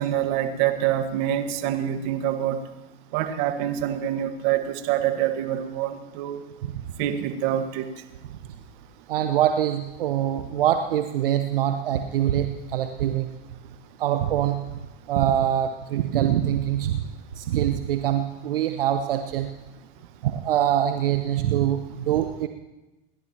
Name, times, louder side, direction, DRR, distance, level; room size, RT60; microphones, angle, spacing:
voice 1, 0.0-2.6 3.1-6.4 7.0-7.9, right 11 dB, 50° right, 7 dB, 1.6 m, -26 dB
voice 2, 9.1-13.3 14.0-14.6 15.1-17.0 17.4-19.5 20.2-22.5, right 11 dB, 70° right, 7 dB, 1.0 m, -24 dB
29.0 x 11.0 x 2.9 m, 1.0 s
hypercardioid pair, 110°, 29 cm